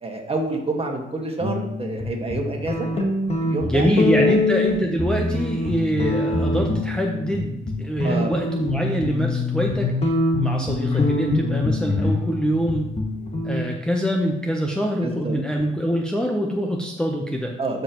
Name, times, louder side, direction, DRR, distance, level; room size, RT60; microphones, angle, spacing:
voice 1, 0.0-2.9 3.4-3.9 4.2-4.3 8.0-8.3 15.0-15.4 17.6-17.8, right 2 dB, 30° right, 1 dB, 1.9 m, -28 dB
sound 1, 1.4-2.0 2.3-7.4 7.7-13.6, left 2 dB, 30° left, 1.7 m, -24 dB
voice 2, 3.6-12.9 13.4-17.5, equal, 5° left, -1 dB, 0.9 m, -24 dB
12.0 x 5.3 x 3.1 m, 0.92 s
cardioid pair, 90°, 20 cm